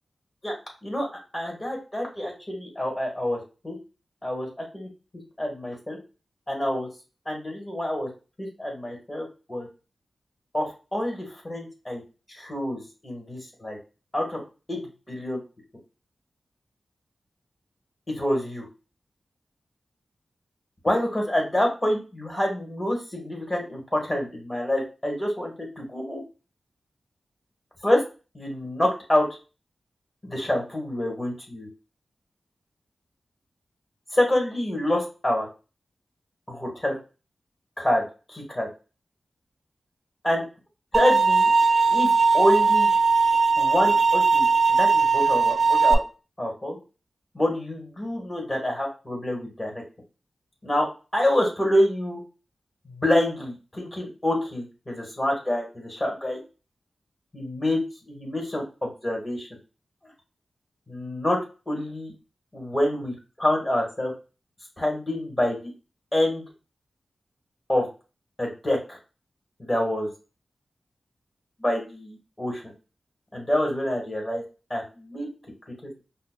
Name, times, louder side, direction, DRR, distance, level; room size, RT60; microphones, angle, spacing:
voice 1, 1.3-3.8 4.2-4.9 5.4-6.0 6.5-6.9 7.2-8.1 8.4-9.7 10.5-12.0 12.3-13.8 14.1-14.4 14.7-15.4 18.1-18.7 20.8-26.2 27.8-28.0 28.3-29.2 30.2-31.7 34.1-35.5 36.5-37.0 37.8-38.0 38.3-38.7 40.2-40.4 40.9-41.5 41.9-42.1 42.3-42.9 43.6-46.0 46.4-46.8 47.3-49.8 50.6-50.9 51.1-52.2 52.8-56.4 57.3-57.8 58.1-59.5 60.9-61.4 61.7-62.1 62.5-64.1 64.8-65.6 66.1-66.4 67.7-67.9 68.4-69.0 69.6-70.1 71.6-72.7 73.3-74.4 74.7-75.3, left 1 dB, 25° left, 0 dB, 1.4 m, -27 dB
sound 1, 40.9-45.9, right 4 dB, 45° right, 0.5 m, -19 dB
5.2 x 2.2 x 2.4 m, 0.33 s
wide cardioid pair, 120°, 0 cm